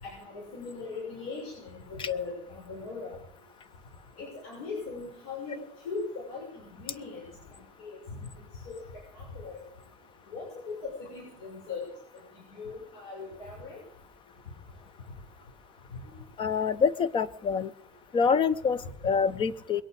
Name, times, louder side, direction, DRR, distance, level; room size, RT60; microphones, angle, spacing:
voice 1, 0.0-3.2 4.2-5.6 5.8-7.2 7.8-8.0 8.7-8.8 9.1-9.6 10.3-11.8 12.3-13.8, left 4 dB, 80° left, -3 dB, 6.5 m, -39 dB
voice 2, 16.4-17.7 18.1-19.8, left 6 dB, 35° left, 17 dB, 0.9 m, -26 dB
22.0 x 8.9 x 7.0 m, 0.74 s
supercardioid pair, 105°, 15 cm